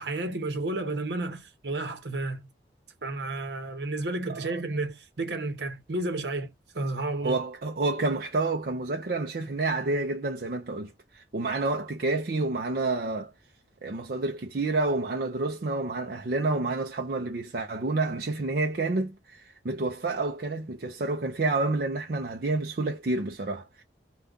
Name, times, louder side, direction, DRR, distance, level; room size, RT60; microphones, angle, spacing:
voice 1, 0.0-2.4 3.0-7.4, right 2 dB, 75° right, 0.9 m, -32 dB
voice 2, 7.2-13.3 13.8-23.8, right 2 dB, 55° right, 0.5 m, -29 dB
5.2 x 2.3 x 3.5 m
head